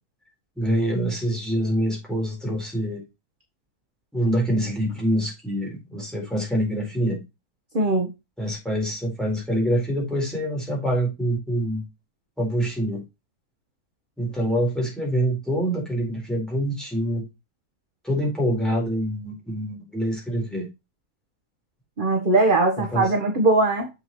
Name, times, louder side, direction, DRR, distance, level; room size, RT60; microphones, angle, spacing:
voice 1, 0.6-3.0 4.1-7.2 8.4-11.8 12.4-13.0 14.2-17.2 18.0-20.7 22.8-23.1, equal, ahead, 4.3 m, -25 dB
voice 2, 7.7-8.1 22.0-23.9, right 2 dB, 35° right, 1.3 m, -20 dB
7.0 x 6.9 x 3.1 m
omnidirectional pair, 1.7 m